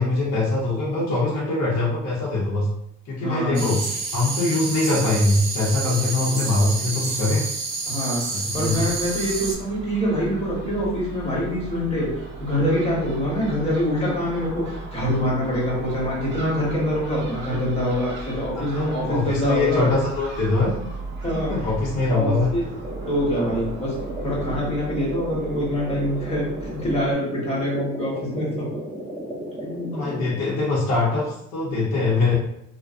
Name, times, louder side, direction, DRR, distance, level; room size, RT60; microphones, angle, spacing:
voice 1, 0.0-2.7 3.1-3.8 4.1-7.5 8.3-8.9 18.8-20.7 21.5-22.5 29.9-32.3, left 2 dB, 60° left, -5 dB, 0.8 m, -23 dB
voice 2, 3.2-3.7 7.9-12.1 12.4-19.9 21.2-21.5 22.1-22.8 23.1-23.9 24.2-28.6 29.6-30.2, equal, 20° left, -5 dB, 1.1 m, -25 dB
sound 1, 3.5-9.5, right 3 dB, 85° right, 0.6 m, -29 dB
Crow / Gull seagull, 8.5-27.1, right 3 dB, 35° right, 0.6 m, -37 dB
sound 2, 22.8-30.3, equal, ahead, 0.7 m, -34 dB
2.3 x 2.1 x 2.4 m, 0.76 s
cardioid pair, 105°, 30 cm